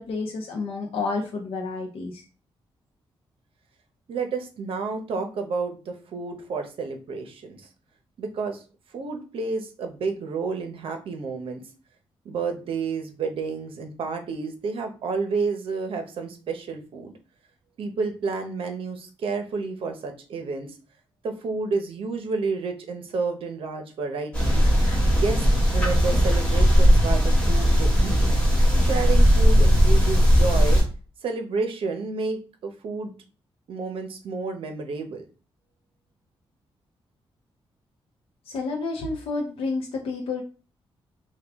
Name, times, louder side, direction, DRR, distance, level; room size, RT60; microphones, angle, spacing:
voice 1, 0.0-2.2 38.5-40.4, left 3 dB, 75° left, 0 dB, 0.7 m, -30 dB
voice 2, 4.1-7.7 8.2-8.6 8.9-11.6 12.2-17.1 17.8-20.7 21.2-24.6 25.2-28.3 28.8-30.8 31.2-33.1 33.7-35.3, right 4 dB, 65° right, 5 dB, 0.8 m, -30 dB
sound 1, 24.3-30.8, equal, 10° left, 1.6 m, -18 dB
4.7 x 2.3 x 3.5 m, 0.36 s
wide cardioid pair, 165°, 10 cm